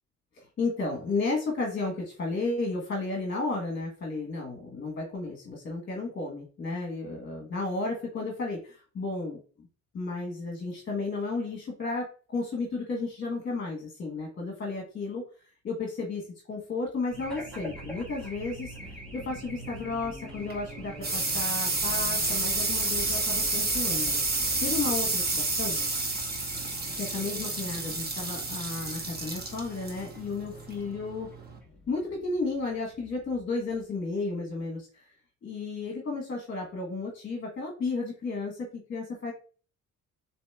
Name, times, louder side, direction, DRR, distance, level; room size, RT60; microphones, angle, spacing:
voice 1, 0.4-9.4 9.9-25.8 27.0-31.3 31.9-35.1 35.4-39.3, left 3 dB, 40° left, 1 dB, 1.1 m, -33 dB
Race car auto racing / Alarm, 17.1-34.1, equal, 5° left, 1.6 m, -45 dB
sound 1, 20.3-31.6, right 3 dB, 30° right, 1.2 m, -30 dB
6.9 x 3.0 x 2.2 m, 0.40 s
cardioid pair, 90°, 30 cm